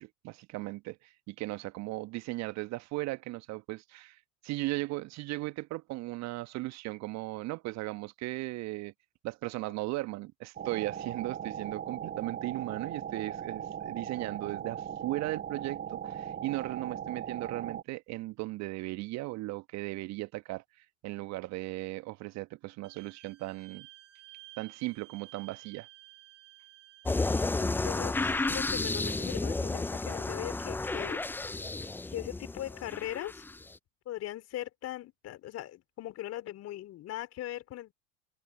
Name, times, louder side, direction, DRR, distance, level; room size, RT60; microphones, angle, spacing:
voice 1, 0.0-8.9 9.2-23.9 24.6-25.9, right 20 dB, 40° right, 1.4 m, -37 dB
sound 1, 10.6-17.8, right 9 dB, 20° right, 1.2 m, -39 dB
Wind instrument woodwind instrument, 22.8-27.5, right 17 dB, 60° right, 7.9 m, -54 dB
sound 2, 27.1-33.6, left 3 dB, 5° left, 0.6 m, -32 dB
voice 2, 27.6-31.2 32.1-33.4 34.1-37.9, left 13 dB, 40° left, 4.0 m, -40 dB
figure-of-eight pair, 85°, 40 cm